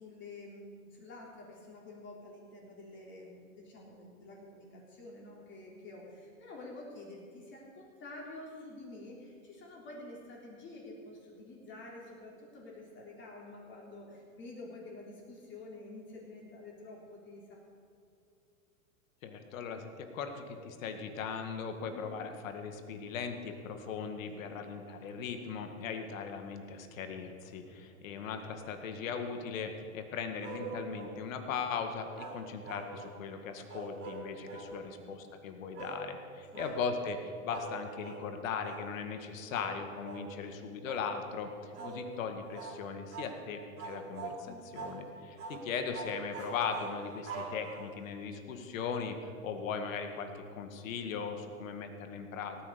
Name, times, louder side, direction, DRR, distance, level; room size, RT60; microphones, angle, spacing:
voice 1, 0.0-17.6 21.8-22.1 24.2-24.6 27.9-28.1 34.8-35.1 36.5-36.7 41.8-42.0 44.5-45.2, left 2 dB, 25° left, -3 dB, 3.6 m, -49 dB
voice 2, 19.2-52.6, left 6 dB, 70° left, 6 dB, 2.0 m, -39 dB
sound 1, 30.4-31.2 32.2-33.2 33.7-34.7 35.8-36.0 36.5-36.8 37.5-37.8 38.0-38.3 38.6-38.9 39.5-39.7 40.0-40.3 40.8-41.1 41.7-42.0 42.5-42.8 43.1-43.4 43.8-44.4 44.7-45.0 45.4-45.6 45.9-48.1, right 4 dB, 30° right, 3.5 m, -43 dB
17.5 x 9.7 x 7.0 m, 2.5 s
hypercardioid pair, 130°, 41 cm